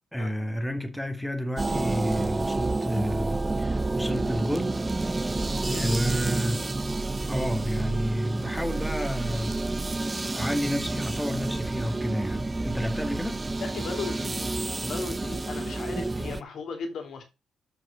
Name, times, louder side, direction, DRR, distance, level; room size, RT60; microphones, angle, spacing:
voice 1, 0.1-4.8 5.8-6.6 7.3-9.6 10.0-13.4, equal, 5° left, 1.9 m, -30 dB
sound 1, 1.6-16.4, right 2 dB, 20° right, 0.5 m, -29 dB
voice 2, 5.7-6.0 13.6-14.4 14.8-17.2, left 4 dB, 60° left, 2.9 m, -36 dB
7.1 x 6.1 x 5.0 m
cardioid pair, 90°, 0 cm